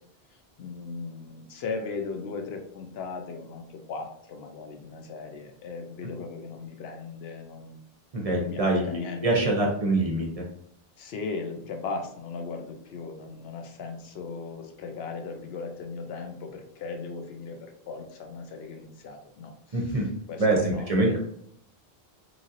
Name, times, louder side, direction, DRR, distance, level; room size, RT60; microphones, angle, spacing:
voice 1, 0.6-7.8 8.3-9.5 11.0-19.8 20.3-21.2, left 4 dB, 80° left, 4 dB, 0.8 m, -37 dB
voice 2, 8.1-10.5 19.7-20.1 20.4-21.2, right 2 dB, 45° right, -1 dB, 0.6 m, -25 dB
3.1 x 2.6 x 2.5 m, 0.69 s
omnidirectional pair, 1.1 m